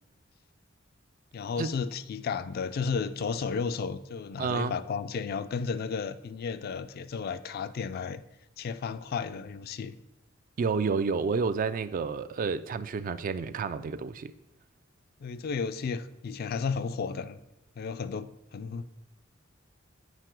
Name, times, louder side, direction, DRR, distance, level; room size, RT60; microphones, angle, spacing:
voice 1, 1.3-8.2 8.6-10.0 15.2-17.4 17.8-18.8, left 5 dB, 50° left, 0.3 m, -33 dB
voice 2, 4.4-4.8 10.6-14.3, right 5 dB, 45° right, 0.3 m, -30 dB
8.0 x 4.7 x 4.5 m
head